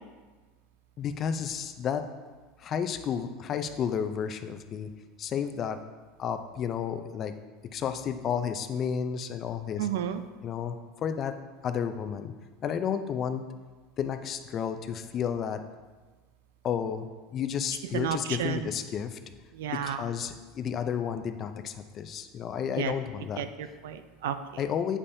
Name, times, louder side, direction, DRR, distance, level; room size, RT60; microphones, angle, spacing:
voice 1, 1.0-2.0 2.6-4.9 5.2-5.8 6.2-7.3 7.7-9.9 10.4-10.8 11.0-11.3 11.6-12.3 12.6-13.4 14.0-15.6 16.6-19.2 19.7-23.5 24.6-25.0, left 8 dB, 40° left, 8 dB, 0.5 m, -31 dB
voice 2, 9.8-10.2 17.9-18.6 19.5-20.0 22.8-22.9 23.4-24.6, right 10 dB, 85° right, 10 dB, 0.4 m, -32 dB
8.3 x 5.4 x 2.7 m, 1.3 s
supercardioid pair, 115°, 0 cm